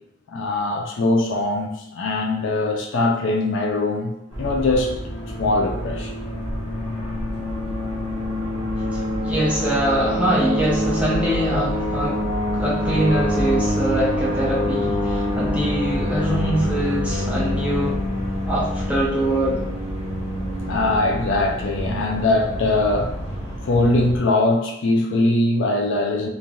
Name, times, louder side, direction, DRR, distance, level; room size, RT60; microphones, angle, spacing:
voice 1, 0.3-4.1 4.4-4.9 5.4-6.1 20.7-23.2 23.6-26.3, left 2 dB, 55° left, 1 dB, 0.4 m, -21 dB
sound 1, 4.3-24.2, equal, 20° left, 0.9 m, -26 dB
voice 2, 9.2-12.2 12.5-18.0 18.5-19.6, right 1 dB, 5° right, -6 dB, 0.6 m, -23 dB
3.2 x 2.5 x 2.3 m, 0.86 s
head